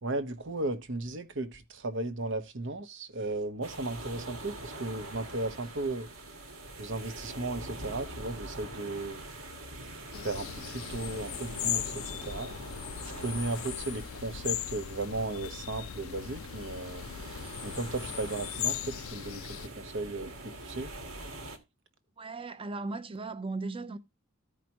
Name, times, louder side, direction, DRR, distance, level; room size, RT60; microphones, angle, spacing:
voice 1, 0.0-6.1 6.8-9.2 10.1-12.5 13.0-17.1 17.6-20.9, right 2 dB, 60° right, 1.0 m, -35 dB
sound 1, 3.6-21.6, right 1 dB, 90° right, 1.8 m, -44 dB
sound 2, 10.1-19.7, left 12 dB, 70° left, 0.4 m, -38 dB
voice 2, 22.2-24.0, right 3 dB, 25° right, 0.7 m, -37 dB
14.5 x 5.0 x 2.9 m
head